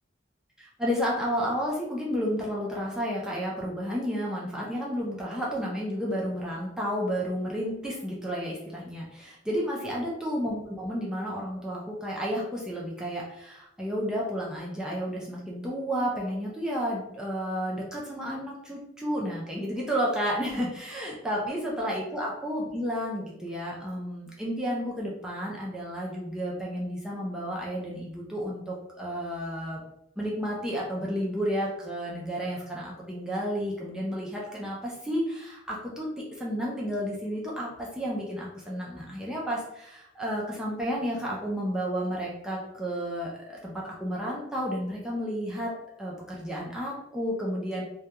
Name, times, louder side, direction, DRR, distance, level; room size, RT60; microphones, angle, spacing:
voice 1, 0.6-29.8 30.2-37.7 37.9-43.7 44.0-45.7 46.0-47.8, equal, 5° right, -5 dB, 0.4 m, -31 dB
2.2 x 2.2 x 2.8 m, 0.84 s
head